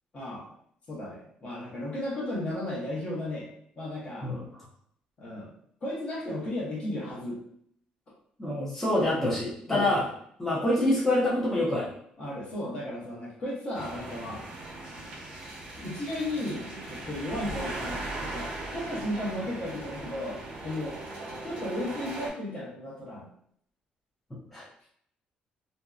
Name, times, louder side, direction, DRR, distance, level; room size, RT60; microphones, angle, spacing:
voice 1, 0.1-0.5 0.9-3.5 3.8-4.3 5.2-5.5 5.8-7.4 9.7-9.9 12.2-14.4 15.8-21.0 21.4-23.3, left 1 dB, 35° left, -5 dB, 0.9 m, -35 dB
voice 2, 8.4-10.1 10.4-11.9 24.5-24.7, left 1 dB, 5° left, -9 dB, 0.7 m, -26 dB
sound 1, 13.7-22.3, right 2 dB, 50° right, 0.9 m, -39 dB
2.6 x 2.1 x 2.3 m, 0.66 s
cardioid pair, 170°, 3 cm